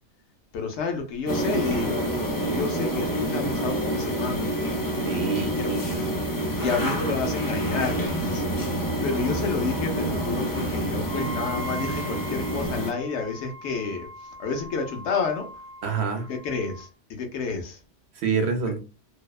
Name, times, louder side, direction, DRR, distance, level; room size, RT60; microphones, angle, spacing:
voice 1, 0.5-2.1 2.5-4.4 5.2-6.0 6.6-8.6 8.9-15.5 16.3-17.8, left 4 dB, 85° left, 0.9 m, -30 dB
sound 1, 1.3-12.9, right 1 dB, 35° left, 0.3 m, -27 dB
voice 2, 5.0-6.1 15.8-16.3 18.1-18.8, right 5 dB, 70° right, 0.9 m, -27 dB
Wind instrument woodwind instrument, 11.0-16.9, equal, 55° left, 1.0 m, -40 dB
2.7 x 2.1 x 2.3 m
omnidirectional pair, 1.2 m